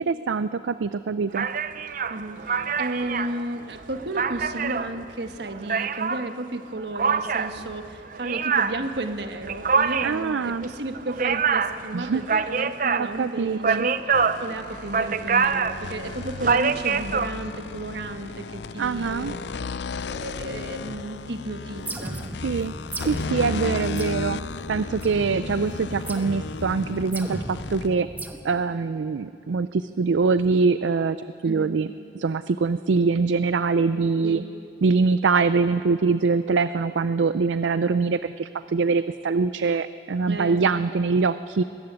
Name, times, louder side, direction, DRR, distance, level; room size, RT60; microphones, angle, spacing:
voice 1, 0.0-1.5 10.0-10.6 11.9-12.5 13.0-13.9 18.8-19.3 22.4-22.7 23.0-24.4 24.7-28.1 28.4-31.2 31.4-34.4 34.8-41.6, right 4 dB, 90° right, 13 dB, 0.4 m, -24 dB
sound 1, 1.3-6.3 6.9-17.3, right 5 dB, 45° right, 0.6 m, -25 dB
voice 2, 2.1-14.0 14.4-19.4 20.0-22.2 23.4-24.0 31.4-31.8 34.2-34.5 40.3-40.7, right 2 dB, 70° right, 7 dB, 1.4 m, -33 dB
sound 2, 14.1-28.0, left 4 dB, 75° left, 0.5 m, -35 dB
sound 3, 21.8-28.4, right 1 dB, 10° right, 1.1 m, -36 dB
20.5 x 14.5 x 9.5 m, 2.6 s
head